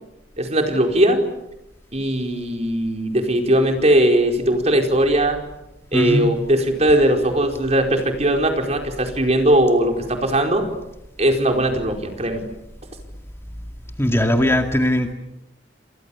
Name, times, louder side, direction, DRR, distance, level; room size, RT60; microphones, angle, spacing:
voice 1, 0.4-1.2 1.9-5.4 5.9-10.6 11.2-12.4, right 1 dB, 40° right, 3 dB, 4.7 m, -19 dB
voice 2, 5.9-6.3 14.0-15.1, left 1 dB, 15° left, 4 dB, 2.2 m, -19 dB
29.0 x 27.0 x 7.2 m, 0.90 s
head